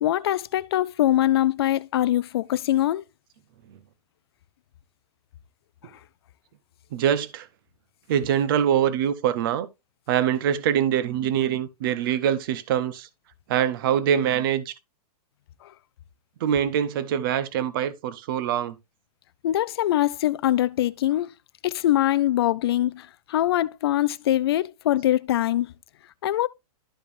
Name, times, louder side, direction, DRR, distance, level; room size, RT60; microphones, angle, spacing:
voice 1, 0.0-3.0 15.6-15.7 19.4-21.3 21.6-25.7 26.2-26.5, left 13 dB, 40° left, 0.4 m, -23 dB
voice 2, 6.9-7.5 8.1-9.7 10.1-13.1 13.5-14.7 16.4-18.7, right 9 dB, 35° right, 0.7 m, -24 dB
12.5 x 5.2 x 2.5 m
supercardioid pair, 180°, 19 cm